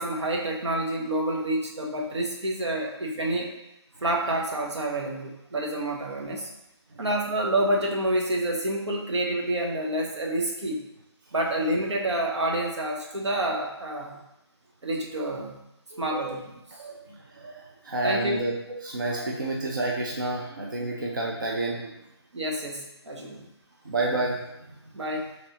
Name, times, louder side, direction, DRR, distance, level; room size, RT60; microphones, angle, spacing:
voice 1, 0.0-3.5 4.0-6.5 7.0-10.8 11.3-14.2 14.8-15.5 16.0-16.4 18.0-18.4 22.3-23.5 24.9-25.3, right 1 dB, 80° right, -1 dB, 0.9 m, -28 dB
voice 2, 15.9-16.4 16.8-17.0 17.4-17.6 17.9-18.5 18.8-21.8 23.9-24.4, right 2 dB, 45° right, -2 dB, 0.5 m, -29 dB
3.9 x 3.1 x 2.8 m, 0.91 s
hypercardioid pair, 180°, 14 cm